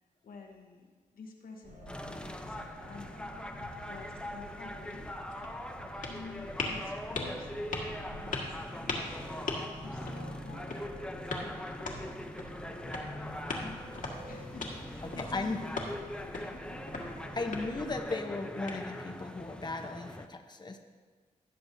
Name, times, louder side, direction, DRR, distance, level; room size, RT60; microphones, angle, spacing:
voice 1, 0.2-3.6 3.8-5.1 5.9-12.0 12.7-13.2 13.5-16.8 17.2-17.4, left 4 dB, 85° left, 1 dB, 1.3 m, -51 dB
sound 1, 1.6-18.0, right 1 dB, 65° right, 1.7 m, -50 dB
sound 2, 1.9-20.3, left 1 dB, 5° left, 0.6 m, -42 dB
sound 3, 4.9-19.3, left 3 dB, 65° left, 1.6 m, -42 dB
voice 2, 13.0-14.0 15.0-15.6 17.3-20.8, left 3 dB, 30° left, 4 dB, 0.9 m, -37 dB
16.5 x 6.8 x 2.7 m, 1.5 s
cardioid pair, 75°, 14 cm